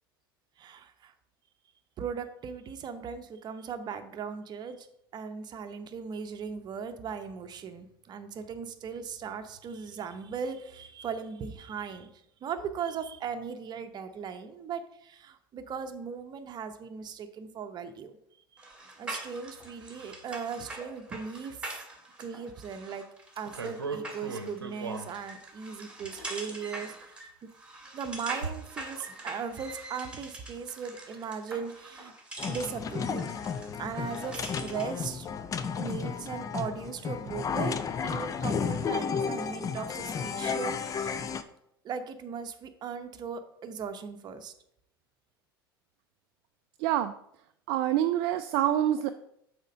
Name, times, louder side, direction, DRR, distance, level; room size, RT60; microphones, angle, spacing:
voice 1, 0.6-1.1 2.0-4.9 5.1-12.1 12.4-18.2 18.5-18.6 19.0-21.6 22.2-23.1 23.4-27.3 27.9-32.1 32.5-33.3 33.8-35.3 35.8-37.8 38.0-41.2 41.8-44.5, right 6 dB, 35° right, 8 dB, 0.8 m, -38 dB
sound 1, 18.6-35.0, right 2 dB, 10° right, 1.9 m, -44 dB
sound 2, 23.3-25.1 25.8-26.6 27.5-27.6 28.3-29.1 29.4-29.6 30.0-30.1 30.5-30.9 31.1-31.5 32.0-32.1, right 4 dB, 85° right, 0.8 m, -38 dB
sound 3, 32.4-41.4, left 6 dB, 25° left, 0.5 m, -33 dB
voice 2, 46.8-47.1 47.7-49.1, right 12 dB, 55° right, 9 dB, 0.4 m, -26 dB
6.5 x 4.4 x 5.1 m, 0.76 s
figure-of-eight pair, 75°, 12 cm